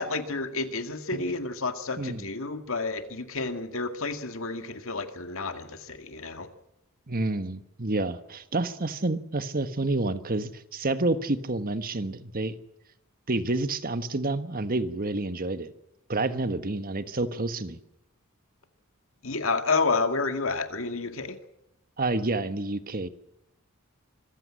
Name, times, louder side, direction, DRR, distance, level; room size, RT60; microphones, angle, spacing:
voice 1, 0.0-6.5 19.2-21.4, left 3 dB, 65° left, 8 dB, 2.1 m, -30 dB
voice 2, 7.1-12.5 13.3-15.7 16.1-17.8 22.0-23.1, right 2 dB, 40° right, 11 dB, 1.4 m, -29 dB
25.5 x 15.0 x 7.6 m, 0.86 s
head